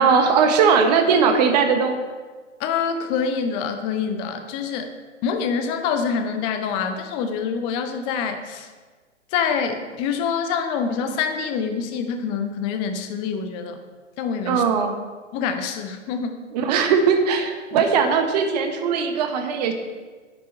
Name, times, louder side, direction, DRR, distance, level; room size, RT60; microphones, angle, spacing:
voice 1, 0.0-2.0 14.5-14.9 16.5-19.7, right 6 dB, 35° right, 6 dB, 1.3 m, -19 dB
voice 2, 2.6-4.9 5.2-8.7 9.3-13.8 14.2-14.6 15.3-16.4 17.7-17.8, left 6 dB, 15° left, 7 dB, 0.5 m, -26 dB
9.6 x 9.4 x 4.5 m, 1.4 s
figure-of-eight pair, 125°, 37 cm